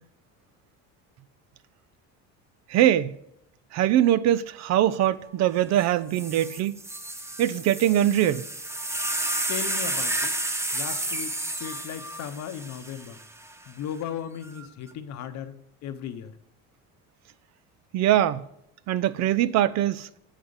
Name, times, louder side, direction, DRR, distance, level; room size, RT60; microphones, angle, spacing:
voice 1, 2.7-3.1 3.7-6.7 7.4-8.4 17.9-18.4 18.9-20.1, right 12 dB, 55° right, 0.4 m, -22 dB
sound 1, 5.8-5.9 6.1-13.5 14.4-14.9, right 1 dB, 10° right, 0.6 m, -31 dB
voice 2, 9.5-10.3 10.7-13.2 13.7-15.5 15.8-16.3, left 9 dB, 55° left, 0.8 m, -36 dB
7.3 x 5.1 x 6.8 m
cardioid pair, 115°, 33 cm